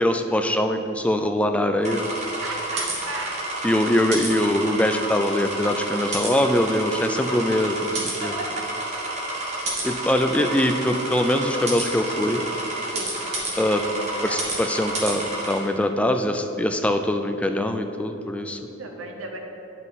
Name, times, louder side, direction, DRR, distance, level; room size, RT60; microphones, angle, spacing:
voice 1, 0.0-2.1 3.6-8.3 9.8-12.4 13.6-13.8 14.2-18.6, left 1 dB, 5° left, 6 dB, 0.3 m, -23 dB
sound 1, 1.8-15.6, right 2 dB, 35° right, 1.5 m, -30 dB
voice 2, 2.4-3.4 7.8-7.9 8.2-8.7 12.9-13.1 13.8-14.4 18.7-19.4, right 3 dB, 70° right, 2 dB, 0.9 m, -35 dB
9.2 x 5.5 x 4.0 m, 2.9 s
head